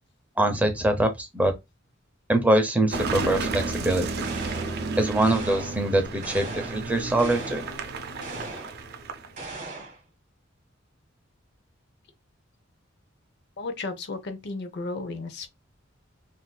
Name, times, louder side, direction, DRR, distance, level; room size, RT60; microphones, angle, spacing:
voice 1, 0.4-1.5 2.3-4.3 5.0-7.6, right 1 dB, 10° right, 0.6 m, -23 dB
Car passing by / Engine, 2.9-9.5, right 3 dB, 55° right, 0.5 m, -32 dB
sound 1, 4.2-4.8 5.2-5.8 6.2-6.8 7.2-7.7 8.2-8.8 9.4-10.0, right 2 dB, 40° right, 1.2 m, -38 dB
voice 2, 13.6-15.5, left 3 dB, 55° left, 0.6 m, -34 dB
3.8 x 2.6 x 2.2 m
head